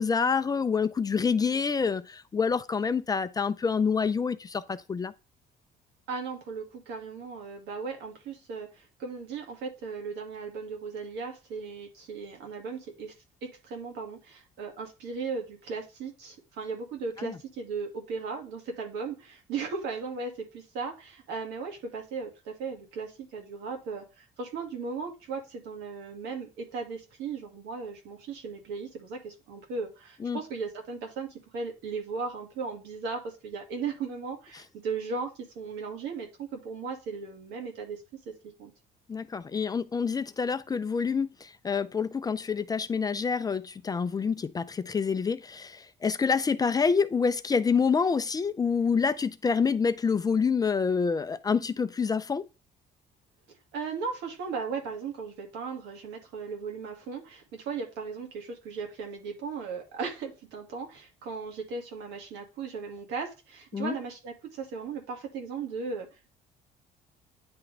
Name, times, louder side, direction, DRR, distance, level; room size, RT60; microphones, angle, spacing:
voice 1, 0.0-5.1 17.2-17.3 30.2-30.4 39.1-52.5 63.7-64.0, left 5 dB, 20° left, 0.4 m, -27 dB
voice 2, 6.1-13.1 13.4-31.3 31.5-38.3 38.6-38.7 53.5-66.3, right 5 dB, 85° right, 2.0 m, -37 dB
9.5 x 3.5 x 3.3 m
cardioid pair, 110°, 17 cm